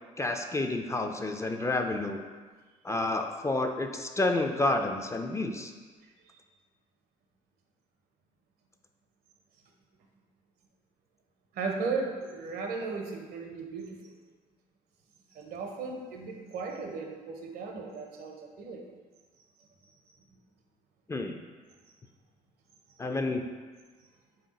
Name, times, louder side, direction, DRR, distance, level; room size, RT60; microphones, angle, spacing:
voice 1, 0.2-2.2 2.8-5.7 21.1-21.4 23.0-23.4, left 2 dB, 20° left, 4 dB, 0.3 m, -29 dB
voice 2, 11.5-14.2 15.3-18.8, right 4 dB, 75° right, 2 dB, 0.6 m, -36 dB
3.4 x 2.8 x 3.9 m, 1.4 s
supercardioid pair, 60°, 16 cm